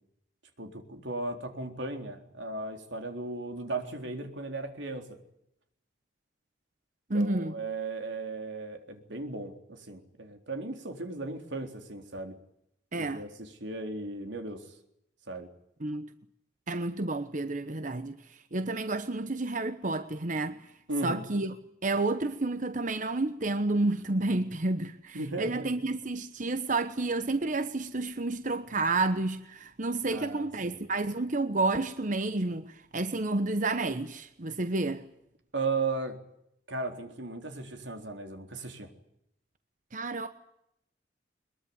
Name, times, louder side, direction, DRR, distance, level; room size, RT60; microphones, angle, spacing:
voice 1, 0.6-5.2 7.1-12.3 12.9-14.6 15.3-15.5 20.9-21.2 25.1-25.7 30.1-30.8 35.5-36.2 36.7-38.9, right 3 dB, 85° right, 3.9 m, -36 dB
voice 2, 7.1-7.5 12.9-13.2 15.8-16.1 16.7-20.6 21.0-21.6 21.8-35.0 39.9-40.3, right 2 dB, 45° right, 1.1 m, -30 dB
22.5 x 22.0 x 9.7 m
head